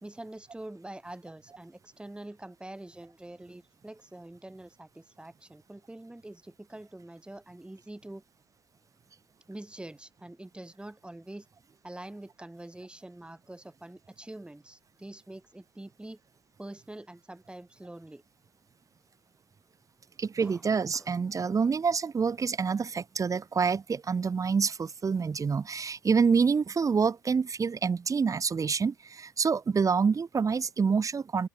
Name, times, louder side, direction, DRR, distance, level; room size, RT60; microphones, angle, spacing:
voice 1, 0.0-8.2 9.5-11.5 11.8-16.2 16.6-18.2 20.4-20.6 20.9-21.1, right 1 dB, 10° right, 2.1 m, -45 dB
voice 2, 20.2-31.5, right 5 dB, 30° right, 1.6 m, -27 dB
open air
hypercardioid pair, 65°, 10 cm